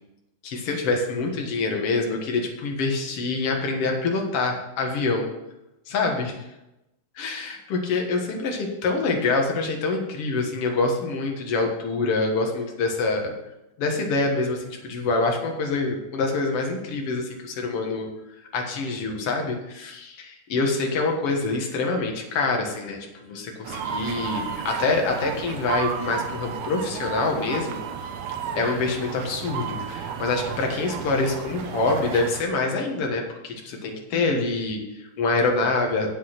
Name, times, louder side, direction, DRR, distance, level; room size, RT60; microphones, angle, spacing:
voice 1, 0.4-5.3 5.9-6.3 7.2-13.3 13.8-18.1 18.5-27.8 28.5-36.1, left 3 dB, 55° left, 1 dB, 1.8 m, -26 dB
sound 1, 23.6-32.4, right 7 dB, 70° right, 1.8 m, -32 dB
8.1 x 7.9 x 5.9 m, 0.93 s
omnidirectional pair, 4.3 m